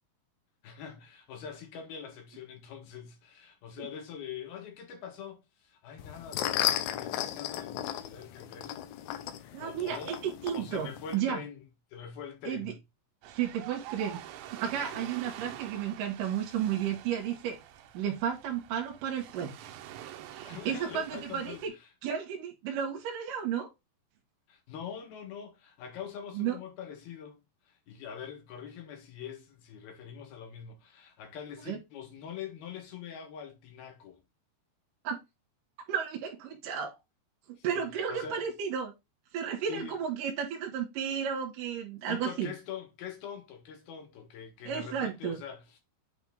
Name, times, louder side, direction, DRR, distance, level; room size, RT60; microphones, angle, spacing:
voice 1, 0.6-8.8 9.6-10.1 10.5-11.6 11.9-12.8 14.9-15.1 20.4-21.9 24.5-34.2 37.6-38.5 39.5-40.0 42.1-45.8, left 8 dB, 65° left, 3.1 m, -44 dB
sound 1, 6.0-11.2, left 12 dB, 85° left, 2.1 m, -34 dB
voice 2, 9.5-11.4 12.5-12.7 13.3-14.2 14.5-17.6 17.9-19.7 20.3-21.7 22.0-23.7 26.3-26.6 31.7-31.8 35.0-35.2 35.9-37.0 37.5-38.9 39.3-42.5 44.7-45.4, right 8 dB, 65° right, 2.5 m, -33 dB
Ocean, 13.2-21.7, right 12 dB, 85° right, 3.1 m, -46 dB
8.5 x 3.7 x 3.5 m
omnidirectional pair, 5.0 m